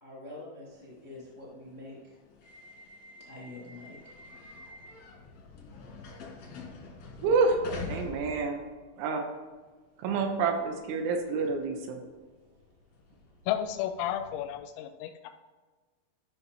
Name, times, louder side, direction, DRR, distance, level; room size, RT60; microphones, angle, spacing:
voice 1, 0.0-2.2 3.3-4.0 5.5-5.8, left 2 dB, 30° left, -5 dB, 0.7 m, -46 dB
sound 1, 0.7-9.1 9.5-14.5, left 3 dB, 70° left, 1.6 m, -47 dB
voice 2, 7.2-7.6 7.9-8.6 9.0-9.2 10.0-12.0, right 4 dB, 80° right, 3 dB, 3.2 m, -28 dB
voice 3, 13.5-15.3, left 11 dB, 85° left, 7 dB, 3.1 m, -32 dB
12.5 x 5.8 x 4.2 m, 1.4 s
omnidirectional pair, 5.7 m